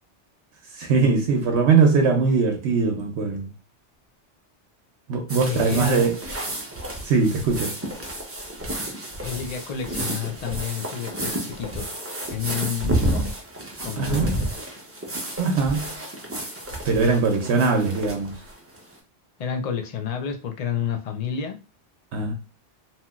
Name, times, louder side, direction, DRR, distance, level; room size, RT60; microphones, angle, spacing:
voice 1, 0.7-3.5 5.1-6.2 7.0-7.7 14.0-14.3 15.4-15.9 16.8-18.3 22.1-22.3, right 4 dB, 75° right, 0.9 m, -21 dB
sound 1, 5.3-18.9, right 1 dB, 20° right, 0.4 m, -31 dB
voice 2, 5.5-6.1 9.2-12.0 12.3-13.3 13.8-14.5 19.4-21.6, left 7 dB, 55° left, 0.4 m, -30 dB
2.8 x 2.8 x 2.3 m
omnidirectional pair, 1.2 m